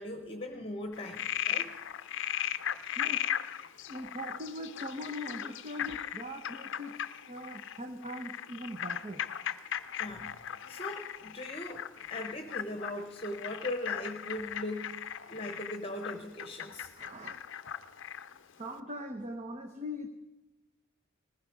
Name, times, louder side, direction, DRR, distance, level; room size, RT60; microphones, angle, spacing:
voice 1, 0.0-1.7 3.8-3.9 10.0-15.0 15.3-16.9, left 1 dB, 25° left, 5 dB, 1.0 m, -39 dB
Frog, 0.9-18.4, left 10 dB, 60° left, 0.6 m, -37 dB
voice 2, 3.9-6.9 7.3-9.2 17.0-17.4 17.7-17.8 18.5-20.1, left 1 dB, 35° right, 5 dB, 0.8 m, -41 dB
19.5 x 15.5 x 4.7 m, 1.0 s
head